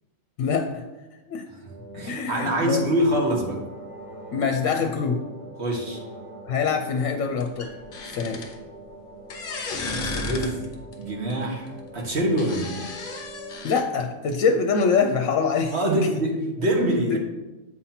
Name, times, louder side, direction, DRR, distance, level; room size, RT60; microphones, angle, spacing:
voice 1, 0.4-0.8 1.3-1.4 1.9-2.9 4.3-5.2 6.5-7.7 8.1-8.4 13.6-15.8 17.1-17.2, left 5 dB, 75° left, 4 dB, 1.0 m, -24 dB
sound 1, 1.7-13.9, right 2 dB, 30° right, 0.8 m, -43 dB
voice 2, 1.9-3.6 5.6-6.0 9.9-10.7 11.0-12.8 15.7-17.2, right 1 dB, 55° right, -1 dB, 1.5 m, -25 dB
sound 2, 7.4-8.6 9.3-10.9 11.3-11.4 12.4-13.8, left 3 dB, 50° left, 0.8 m, -33 dB
7.9 x 2.8 x 5.7 m, 1.1 s
omnidirectional pair, 1.4 m